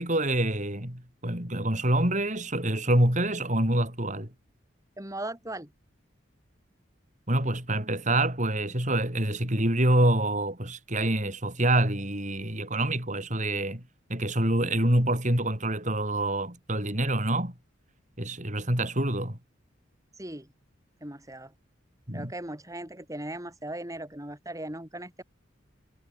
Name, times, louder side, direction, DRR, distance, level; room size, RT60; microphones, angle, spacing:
voice 1, 0.0-4.3 7.3-13.8 14.1-17.5 18.2-19.4 22.1-22.3, right 1 dB, 40° right, 7.6 m, -26 dB
voice 2, 5.0-5.7 20.1-20.5 21.0-21.5 22.1-25.2, right 1 dB, 15° right, 6.3 m, -38 dB
head